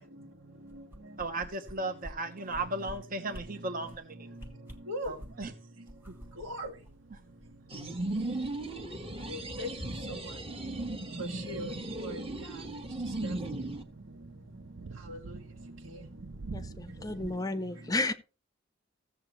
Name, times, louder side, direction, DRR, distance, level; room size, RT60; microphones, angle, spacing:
voice 1, 0.6-1.3 2.5-2.6 3.6-3.9 4.2-4.5 4.8-5.1 6.4-6.7 9.3-9.7 10.1-10.3 11.2-12.6 13.2-13.4 14.1-14.3 15.1-16.0 17.2-17.3 17.8-18.1, equal, 80° right, 2.1 m, -42 dB
sound 1, 0.7-1.7 2.0-2.1 2.5-2.9 3.3-3.4 3.8-4.0 4.3-5.5 5.9-7.5 7.8-7.9, equal, 10° right, 1.3 m, -46 dB
voice 2, 1.2-3.9 5.1-5.5, right 2 dB, 45° right, 1.1 m, -35 dB
sound 2, 6.2-17.4, right 4 dB, 65° right, 0.6 m, -49 dB
sound 3, 7.7-13.8, right 2 dB, 30° right, 1.4 m, -36 dB
voice 3, 16.5-18.1, left 2 dB, 20° left, 0.6 m, -32 dB
15.5 x 7.2 x 3.1 m
head